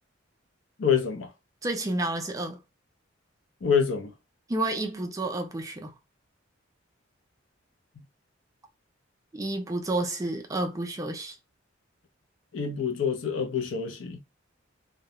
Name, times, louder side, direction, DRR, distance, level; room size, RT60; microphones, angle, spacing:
voice 1, 0.8-1.3 3.6-4.1 12.5-14.2, left 6 dB, 70° left, 0.6 m, -26 dB
voice 2, 1.6-2.6 4.5-5.9 9.3-11.4, right 2 dB, 15° right, 0.3 m, -30 dB
2.2 x 2.0 x 2.8 m
head